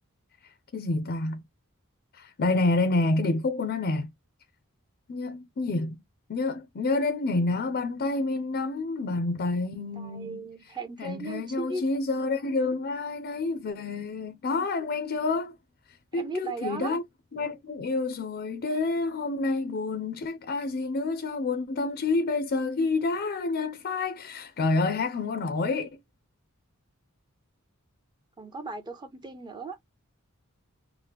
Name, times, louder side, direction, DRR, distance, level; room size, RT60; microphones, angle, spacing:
voice 1, 0.7-1.4 2.1-4.1 5.1-6.0 6.3-10.5 11.0-15.6 16.1-17.0 17.3-25.9, left 3 dB, 45° left, 0.4 m, -28 dB
voice 2, 9.8-11.8 16.2-17.0 28.4-29.8, right 3 dB, 20° right, 0.5 m, -37 dB
2.8 x 2.1 x 3.3 m
head